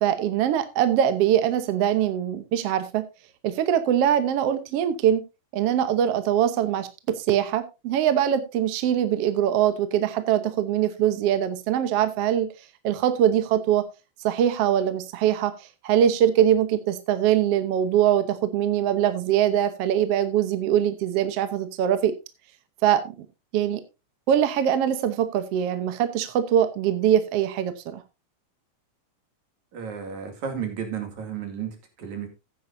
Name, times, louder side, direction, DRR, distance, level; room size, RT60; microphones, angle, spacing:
voice 1, 0.0-3.0 3.4-5.2 5.5-12.5 12.8-13.8 14.2-22.1 22.8-23.3 23.5-23.8 24.3-28.0, right 10 dB, 65° right, 10 dB, 1.8 m, -22 dB
voice 2, 29.7-32.3, right 7 dB, 80° right, 5 dB, 3.9 m, -33 dB
15.0 x 9.4 x 2.7 m, 0.26 s
omnidirectional pair, 3.3 m